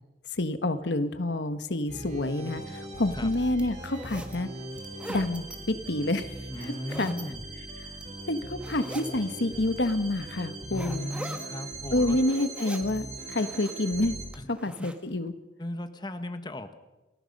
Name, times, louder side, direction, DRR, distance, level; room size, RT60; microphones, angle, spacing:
voice 1, 0.4-4.5 5.1-6.7 7.0-7.1 8.3-11.1 11.9-14.2 14.5-15.3, left 1 dB, 85° left, 10 dB, 1.4 m, -28 dB
sound 1, 1.9-14.3, right 2 dB, 45° right, 6.6 m, -40 dB
sound 2, 2.5-2.6 3.2-4.4 4.7-5.6 6.5-7.2 7.8-8.2 8.6-9.1 9.8-9.9 10.7-11.5 12.0-13.0 13.3-13.9 14.3-14.9, right 1 dB, 5° right, 1.8 m, -42 dB
voice 2, 6.5-7.4 10.7-12.2 14.3-14.5 14.8-14.9 15.6-16.8, left 1 dB, 25° left, 9 dB, 1.4 m, -37 dB
29.5 x 21.0 x 5.4 m, 1.1 s
head